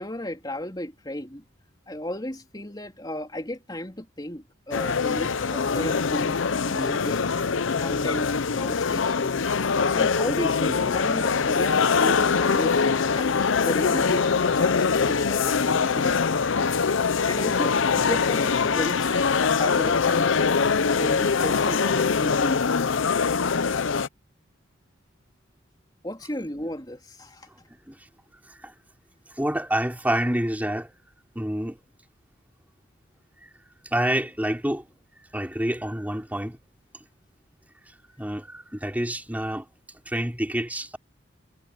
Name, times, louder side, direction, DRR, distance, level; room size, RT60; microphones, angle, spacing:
voice 1, 0.0-1.4 1.9-6.4 6.6-7.3 7.8-9.3 9.9-16.2 17.3-20.4 21.0-22.6 26.0-27.5, left 1 dB, 20° left, 3.5 m, -34 dB
sound 1, 4.7-24.1, left 5 dB, 75° left, 0.7 m, -23 dB
voice 2, 29.4-30.9 31.4-31.8 33.9-34.8 35.3-36.6 38.2-39.6 40.1-41.0, right 1 dB, 10° right, 3.9 m, -27 dB
head